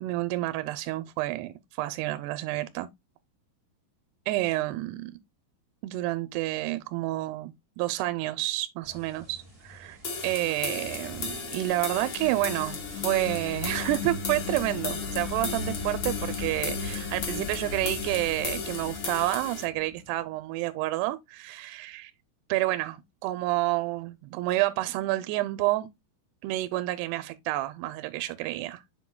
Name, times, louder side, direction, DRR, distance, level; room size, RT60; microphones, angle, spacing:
voice 1, 0.0-2.9 4.3-5.1 5.8-22.1 22.5-25.9 26.4-28.8, right 17 dB, 90° right, 2.6 m, -29 dB
sound 1, 8.8-16.8, right 2 dB, 35° right, 0.5 m, -52 dB
sound 2, 10.0-19.6, left 5 dB, 70° left, 1.2 m, -36 dB
sound 3, 10.9-20.1, left 5 dB, 85° left, 2.8 m, -37 dB
7.8 x 6.0 x 2.3 m
omnidirectional pair, 4.6 m